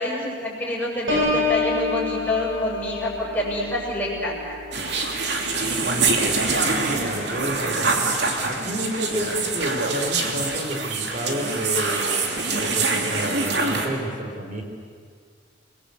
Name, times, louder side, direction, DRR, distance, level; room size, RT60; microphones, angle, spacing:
voice 1, 0.0-4.4, left 1 dB, 10° left, -4 dB, 7.2 m, -27 dB
Piano, 1.1-6.7 7.2-7.5, left 3 dB, 85° right, 7.7 m, -29 dB
sound 1, 4.7-13.9, right 3 dB, 65° right, 3.0 m, -24 dB
voice 2, 6.7-8.0 8.4-12.3 12.6-14.6, equal, 40° right, 2 dB, 3.6 m, -30 dB
29.5 x 21.5 x 8.4 m, 2.1 s
head